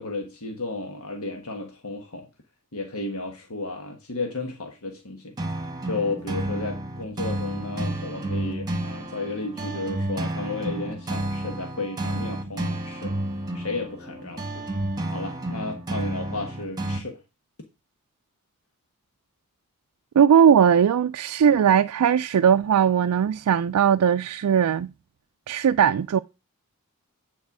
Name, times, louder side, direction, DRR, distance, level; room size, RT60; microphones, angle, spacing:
voice 1, 0.0-2.3 2.7-5.4 5.6-13.2 13.5-14.7 15.1-17.2, left 3 dB, 65° left, 1.4 m, -33 dB
sound 1, 5.4-17.0, right 1 dB, 20° right, 1.6 m, -31 dB
voice 2, 20.2-24.9 25.5-26.2, right 8 dB, 85° right, 0.4 m, -19 dB
9.6 x 4.4 x 6.0 m
head